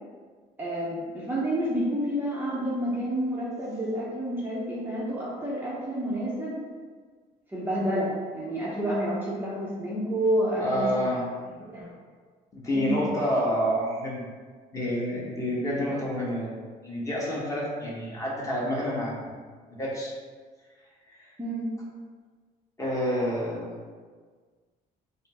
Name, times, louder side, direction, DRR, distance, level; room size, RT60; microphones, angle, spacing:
voice 1, 0.6-6.6 7.5-10.9 11.6-11.9 12.7-13.0 21.4-21.7, right 1 dB, 10° right, -7 dB, 0.7 m, -29 dB
voice 2, 10.6-11.3 12.5-14.2 14.7-16.5 16.8-19.3 19.8-20.1 21.1-21.3 22.8-23.7, equal, 20° left, -5 dB, 1.1 m, -28 dB
4.2 x 2.0 x 4.1 m, 1.6 s
cardioid pair, 110°, 17 cm